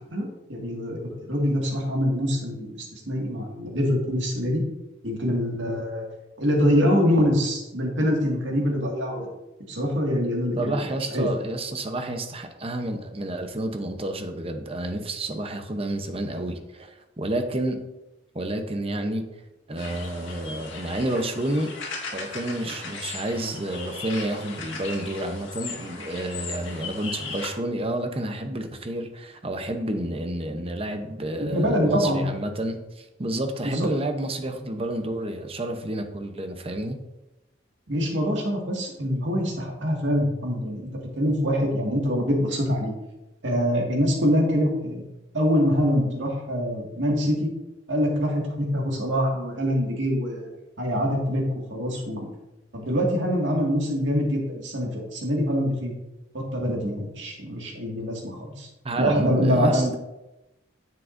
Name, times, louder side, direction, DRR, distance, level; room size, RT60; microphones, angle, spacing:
voice 1, 0.1-4.6 5.0-6.0 6.4-9.3 9.7-10.8 11.1-11.3 31.4-32.2 33.6-33.9 37.9-40.9 41.2-42.9 43.4-45.1 45.3-47.5 47.9-50.5 50.8-51.4 51.7-52.3 52.7-55.9 56.3-58.7 59.0-59.8, equal, 75° right, 0 dB, 2.0 m, -24 dB
voice 2, 10.6-17.8 18.3-19.2 19.7-21.7 22.1-37.0 58.8-60.0, right 1 dB, 30° right, 6 dB, 0.8 m, -30 dB
sound 1, 19.8-27.5, left 4 dB, 80° left, 1.9 m, -37 dB
9.9 x 7.5 x 2.6 m, 0.99 s
head